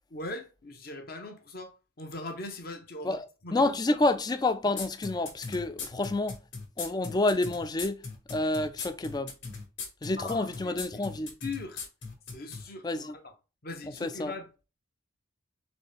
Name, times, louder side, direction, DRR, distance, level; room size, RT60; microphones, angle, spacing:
voice 1, 0.1-3.6 10.2-10.8 11.4-11.8 12.3-13.3 13.6-14.7, left 2 dB, 50° left, 0.9 m, -40 dB
voice 2, 3.5-6.4 6.8-8.0 8.3-9.3 10.0-11.3 12.8-13.1 14.0-14.3, left 2 dB, 20° left, 0.3 m, -28 dB
sound 1, 4.8-12.6, left 4 dB, 65° left, 1.6 m, -38 dB
4.2 x 3.2 x 3.4 m
head